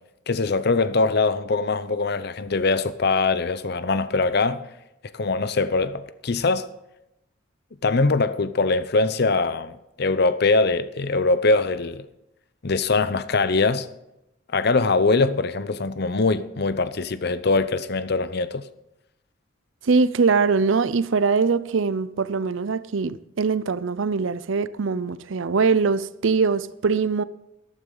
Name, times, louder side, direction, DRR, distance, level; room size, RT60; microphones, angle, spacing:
voice 1, 0.3-4.7 5.1-6.7 7.8-12.0 12.6-13.9 14.5-18.7, left 3 dB, 50° left, 0.7 m, -22 dB
voice 2, 19.8-27.2, right 4 dB, 70° right, 0.5 m, -22 dB
14.0 x 12.5 x 3.9 m
head